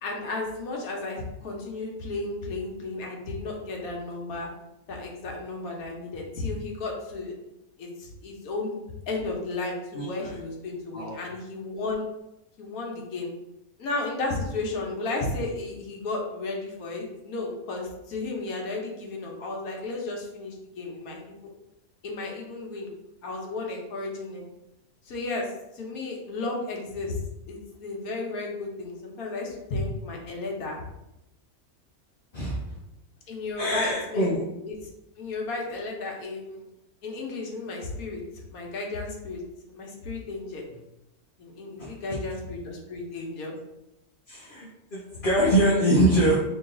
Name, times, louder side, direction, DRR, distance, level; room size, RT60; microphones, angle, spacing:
voice 1, 0.0-4.5 4.9-7.3 7.8-8.8 9.1-12.1 12.6-13.3 13.8-21.5 22.0-22.9 23.2-24.4 25.1-27.2 27.5-30.8 33.3-34.4 34.6-34.8 35.2-36.6 37.0-38.2 38.5-39.4 39.7-40.6 41.4-43.5, left 3 dB, 80° left, 0 dB, 1.3 m, -33 dB
voice 2, 9.9-10.4 10.9-11.2 32.3-32.6 33.6-34.4 41.8-42.0 44.3-46.4, right 1 dB, 45° left, -5 dB, 0.8 m, -24 dB
3.1 x 3.1 x 3.7 m, 0.90 s
omnidirectional pair, 1.5 m